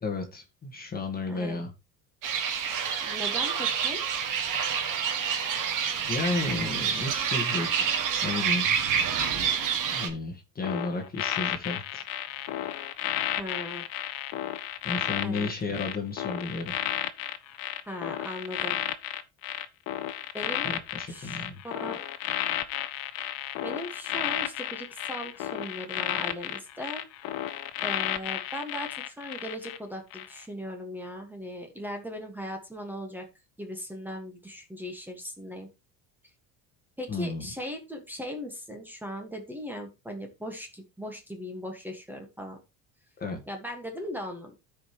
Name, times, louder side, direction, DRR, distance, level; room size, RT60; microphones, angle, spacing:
voice 1, 0.0-1.7 6.1-8.8 9.9-12.0 12.3-12.5 14.8-16.7 20.6-21.6 37.1-37.5 43.2-43.4, left 3 dB, 25° left, 2 dB, 1.6 m, -33 dB
voice 2, 1.3-1.6 3.0-4.0 13.4-13.9 15.2-15.5 17.9-18.8 20.3-20.7 21.1-22.1 23.6-27.1 27.8-33.3 33.6-35.7 37.0-42.6 43.5-44.5, equal, 5° right, 3 dB, 1.6 m, -38 dB
sound 1, 2.2-10.1, right 7 dB, 55° right, 1.9 m, -28 dB
sound 2, 10.6-29.8 30.1-30.4, left 12 dB, 60° left, 1.0 m, -33 dB
13.5 x 5.0 x 3.0 m, 0.26 s
cardioid pair, 125°, 39 cm